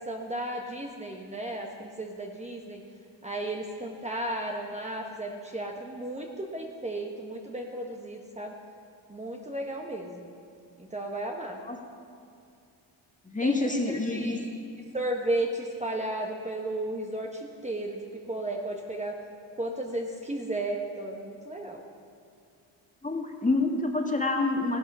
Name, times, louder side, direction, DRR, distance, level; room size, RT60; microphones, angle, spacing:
voice 1, 0.0-2.8 3.2-8.5 9.1-10.3 10.8-11.6 13.4-14.5 14.9-19.2 19.6-21.8, right 1 dB, 15° right, 1 dB, 1.2 m, -34 dB
voice 2, 13.2-14.4 23.0-24.8, left 2 dB, 15° left, 3 dB, 1.7 m, -27 dB
15.5 x 11.5 x 5.5 m, 2.5 s
cardioid pair, 90°, 46 cm